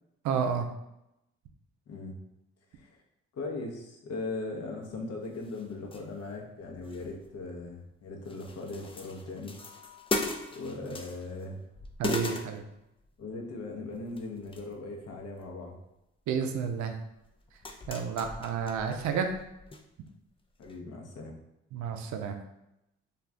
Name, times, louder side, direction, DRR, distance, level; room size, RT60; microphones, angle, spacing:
voice 1, 0.2-0.7 12.0-12.6 16.3-17.0 17.9-19.3 21.7-22.4, right 6 dB, 65° right, 6 dB, 0.5 m, -30 dB
voice 2, 1.9-2.2 2.7-3.0 3.3-9.6 10.5-11.6 13.2-15.8 20.6-21.3, left 2 dB, 55° left, 1 dB, 0.8 m, -39 dB
sound 1, 4.9-5.0 5.3-6.3 6.6-7.9 8.3-11.5 11.8-13.2 13.9-14.7 15.1-15.5 16.5-16.6 17.2-19.8 20.1-20.2 20.6-20.8, left 2 dB, 20° left, 0.4 m, -38 dB
2.4 x 2.4 x 3.3 m, 0.88 s
hypercardioid pair, 55°, 31 cm